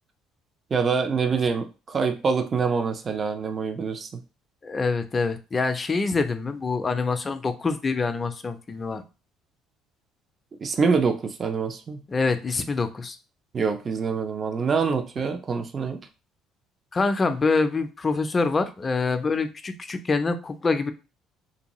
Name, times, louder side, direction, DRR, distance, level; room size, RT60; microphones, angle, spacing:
voice 1, 0.7-4.1 10.6-12.0 13.5-16.0, right 5 dB, 40° right, 6 dB, 0.4 m, -25 dB
voice 2, 4.6-9.0 12.1-13.2 16.9-20.9, left 4 dB, 30° left, 9 dB, 0.4 m, -25 dB
2.6 x 2.3 x 2.9 m, 0.31 s
supercardioid pair, 80°, 0 cm